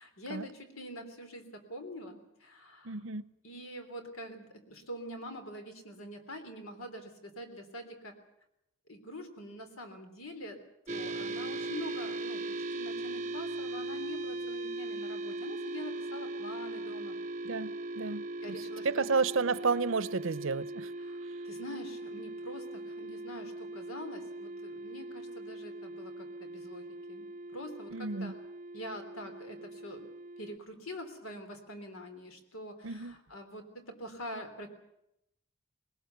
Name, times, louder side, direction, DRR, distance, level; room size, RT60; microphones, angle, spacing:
voice 1, 0.0-2.9 3.4-8.1 8.9-10.6 10.9-17.1 18.4-19.0 21.0-21.2 21.4-28.3 28.7-30.1 30.4-34.7, equal, 90° left, 3.4 m, -45 dB
voice 2, 2.8-3.3 17.4-20.9 27.9-28.3 32.8-33.1, right 4 dB, 70° right, 0.7 m, -32 dB
sound 1, 10.9-30.6, right 2 dB, 35° right, 0.7 m, -39 dB
20.5 x 19.0 x 8.2 m
head